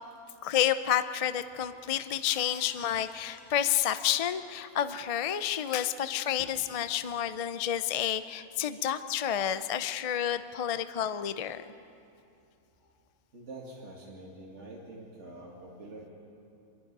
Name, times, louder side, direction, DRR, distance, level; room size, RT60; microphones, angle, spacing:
voice 1, 0.4-11.6, left 10 dB, 60° left, 12 dB, 0.3 m, -30 dB
sound 1, 2.3-5.5, equal, 40° left, 4.9 m, -53 dB
voice 2, 13.3-16.1, right 2 dB, 50° right, -3 dB, 2.4 m, -46 dB
25.0 x 22.5 x 5.4 m, 2.6 s
omnidirectional pair, 1.5 m